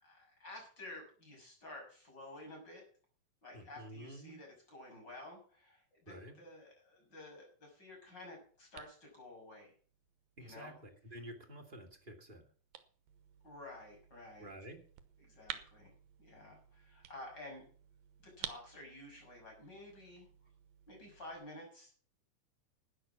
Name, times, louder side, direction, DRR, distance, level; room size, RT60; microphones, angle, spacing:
voice 1, 0.0-2.8 3.4-9.7 10.4-10.8 13.4-14.5 15.2-15.9 16.2-17.6 18.2-20.3 20.9-21.9, left 1 dB, 30° left, 0 dB, 7.0 m, -52 dB
voice 2, 3.5-4.4 6.1-6.4 10.4-12.4 14.4-14.8, right 1 dB, 20° right, 4 dB, 1.8 m, -50 dB
sound 1, 7.9-21.4, right 11 dB, 85° right, 2.8 m, -54 dB
12.5 x 10.0 x 5.9 m, 0.43 s
omnidirectional pair, 4.1 m